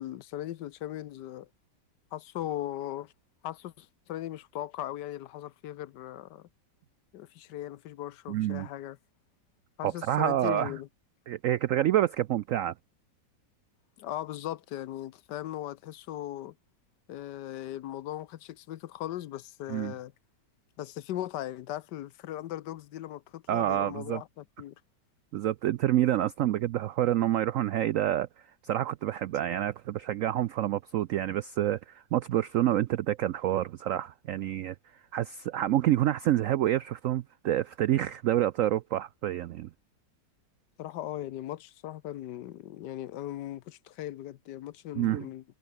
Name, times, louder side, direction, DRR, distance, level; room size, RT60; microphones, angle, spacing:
voice 1, 0.0-1.5 2.1-3.1 3.4-6.5 7.1-9.0 9.8-10.9 14.0-16.5 17.1-20.1 20.8-24.7 40.8-45.4, left 13 dB, 75° left, 1.3 m, -38 dB
voice 2, 8.3-8.7 9.8-10.7 11.3-12.7 19.7-19.9 23.5-24.2 25.3-28.3 28.6-34.8 35.1-39.7 45.0-45.3, right 12 dB, 80° right, 0.7 m, -28 dB
omnidirectional pair, 1.9 m